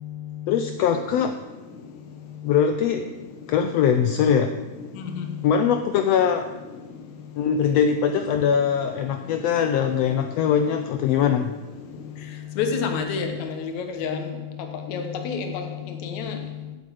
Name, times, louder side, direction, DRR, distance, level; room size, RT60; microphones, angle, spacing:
voice 1, 0.5-1.3 2.4-3.1 3.5-4.5 5.4-6.5 7.4-11.5, left 7 dB, 85° left, 8 dB, 1.4 m, -21 dB
voice 2, 12.6-14.2 14.9-15.6 16.0-16.3, left 5 dB, 70° left, 5 dB, 2.5 m, -28 dB
15.5 x 8.0 x 4.9 m, 1.2 s
omnidirectional pair, 3.5 m